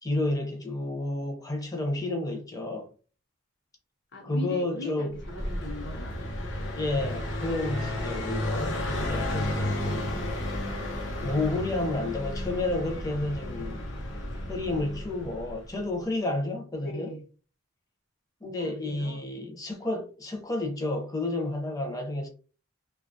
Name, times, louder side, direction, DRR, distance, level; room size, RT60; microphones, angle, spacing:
voice 1, 0.0-2.9 4.2-5.2 6.7-10.2 11.1-13.9 14.5-17.1 18.4-22.3, left 2 dB, 15° left, 0.6 m, -31 dB
voice 2, 4.1-6.2 10.1-10.5 16.8-17.2 18.6-19.2, left 1 dB, 60° left, 0.8 m, -40 dB
Car passing by, 5.1-15.8, left 1 dB, 80° left, 0.8 m, -32 dB
2.7 x 2.3 x 2.6 m
head